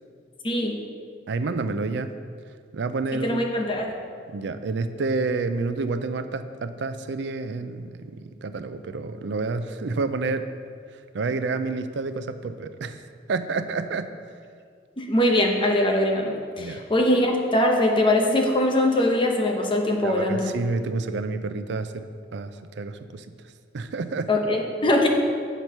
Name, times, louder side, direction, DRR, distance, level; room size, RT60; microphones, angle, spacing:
voice 1, 1.3-2.1 2.7-3.4 4.3-10.5 11.1-13.0 13.3-14.1 16.6-16.8 20.0-22.0 22.3-23.3 23.7-24.3, right 3 dB, 70° right, 11 dB, 0.4 m, -29 dB
voice 2, 3.1-3.9 15.0-20.5 24.3-25.1, left 1 dB, 30° left, 1 dB, 0.8 m, -22 dB
8.0 x 4.5 x 5.5 m, 2.1 s
head